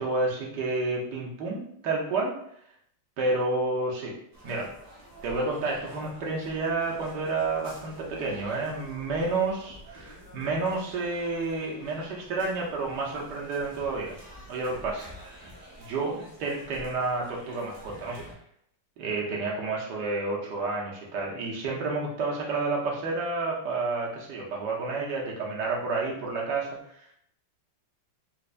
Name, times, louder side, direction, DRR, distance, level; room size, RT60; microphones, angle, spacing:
voice 1, 0.0-2.4 3.2-4.1 4.4-4.7 5.2-14.2 14.5-15.5 15.8-18.2 19.0-26.7, right 3 dB, 65° right, -2 dB, 1.3 m, -30 dB
sound 1, 4.3-18.3, equal, 80° right, 0.3 m, -48 dB
4.3 x 2.6 x 2.5 m, 0.71 s
omnidirectional pair, 2.2 m